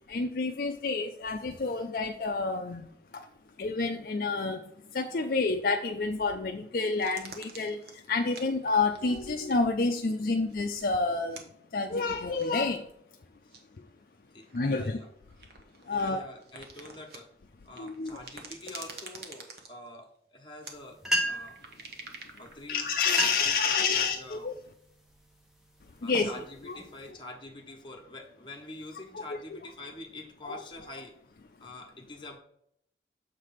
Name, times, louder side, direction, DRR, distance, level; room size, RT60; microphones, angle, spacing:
voice 1, 0.1-3.3 3.6-4.6 4.9-11.4 11.7-12.9 14.5-15.0 15.9-16.2 17.8-18.1 22.7-24.5 26.0-26.3 29.1-29.2 30.4-30.6, left 4 dB, 55° left, 4 dB, 0.4 m, -29 dB
sound 1, 7.0-9.5 9.8-10.2 10.5-10.9 11.3-11.4 12.3-12.7 13.5-13.6 14.4-17.2 17.7-20.1 20.6-20.7 21.2-23.9, right 4 dB, 60° right, 1.1 m, -48 dB
voice 2, 14.3-15.4 15.9-17.3 17.6-21.0 21.3-21.6 22.4-22.9 23.4-24.5 26.0-31.1 31.6-32.4, left 2 dB, 25° left, 2 dB, 1.1 m, -46 dB
sound 2, 20.8-20.9 21.0-21.6 22.5-22.6 23.0-23.6 24.1-24.4 25.1-25.3 25.9-27.1, equal, 5° right, 0.8 m, -32 dB
7.2 x 3.3 x 5.8 m, 0.70 s
head